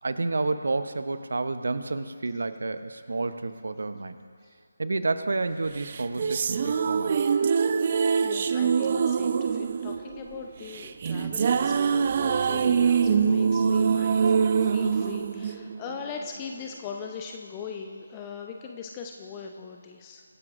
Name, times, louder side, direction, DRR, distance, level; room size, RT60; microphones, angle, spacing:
voice 1, 0.0-4.2 4.8-7.2, right 3 dB, 60° right, 10 dB, 0.8 m, -30 dB
sound 1, 5.8-16.2, right 6 dB, 35° right, 0.5 m, -24 dB
voice 2, 8.2-20.2, left 6 dB, 20° left, 3 dB, 0.7 m, -40 dB
25.0 x 10.5 x 2.5 m, 2.1 s
figure-of-eight pair, 155°, 0 cm